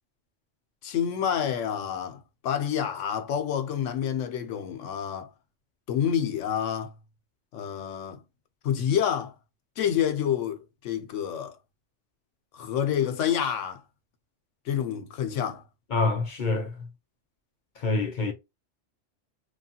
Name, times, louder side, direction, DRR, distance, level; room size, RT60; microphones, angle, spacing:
voice 1, 0.8-5.3 5.9-6.9 7.5-8.2 8.6-9.3 9.8-11.6 12.5-13.8 14.7-15.6, left 9 dB, 85° left, 0.9 m, -28 dB
voice 2, 15.9-16.9 17.8-18.3, left 3 dB, 50° left, 0.7 m, -26 dB
3.2 x 2.3 x 2.7 m
omnidirectional pair, 1.2 m